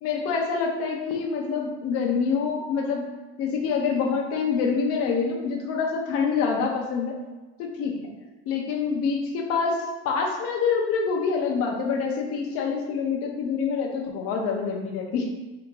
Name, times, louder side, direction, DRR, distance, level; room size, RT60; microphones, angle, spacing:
voice 1, 0.0-3.1 3.4-7.2 7.6-7.9 8.5-15.3, left 5 dB, 50° left, 1 dB, 0.8 m, -26 dB
3.7 x 2.9 x 3.7 m, 1.2 s
cardioid pair, 150°, 31 cm